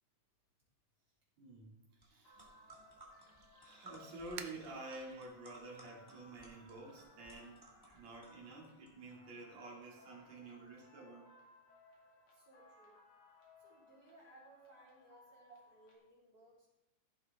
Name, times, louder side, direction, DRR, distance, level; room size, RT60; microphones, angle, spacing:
voice 1, 1.4-2.8 3.6-11.3, right 2 dB, 65° right, -2 dB, 3.7 m, -50 dB
sound 1, 2.0-2.1 2.3-8.9, right 2 dB, 10° right, 1.5 m, -59 dB
sound 2, 2.2-16.0, left 2 dB, 45° left, 2.9 m, -64 dB
sound 3, 2.4-7.6, right 9 dB, 85° right, 2.2 m, -57 dB
voice 2, 12.3-13.0 13.6-16.7, right 1 dB, 30° right, -6 dB, 4.2 m, -63 dB
15.5 x 7.7 x 3.6 m, 0.92 s
omnidirectional pair, 3.4 m